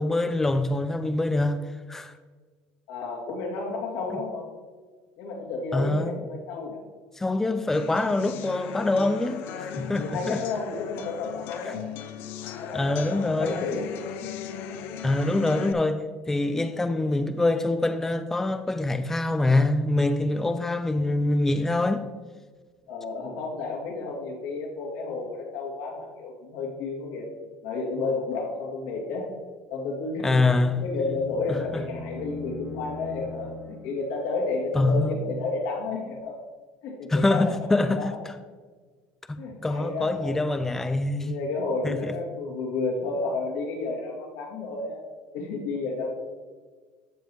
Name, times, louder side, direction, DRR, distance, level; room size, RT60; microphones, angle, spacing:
voice 1, 0.0-1.6 1.9-2.1 5.7-6.2 7.2-10.4 11.6-11.7 12.7-13.7 15.0-22.0 30.2-30.9 31.5-31.8 34.7-35.1 37.1-38.1 39.3-41.4 41.8-42.1, left 2 dB, 10° left, 0.4 m, -25 dB
voice 2, 2.9-4.5 5.2-6.8 10.0-11.8 12.6-13.9 22.9-27.3 27.6-29.3 29.7-30.5 30.8-36.4 36.8-38.1 39.4-40.4 41.2-45.0 45.3-46.1, left 3 dB, 80° left, 2.5 m, -31 dB
sound 1, 7.7-15.7, left 8 dB, 65° left, 0.7 m, -37 dB
sound 2, 30.4-34.2, left 2 dB, 5° right, 1.3 m, -41 dB
15.0 x 5.3 x 3.0 m
cardioid pair, 125°, 4 cm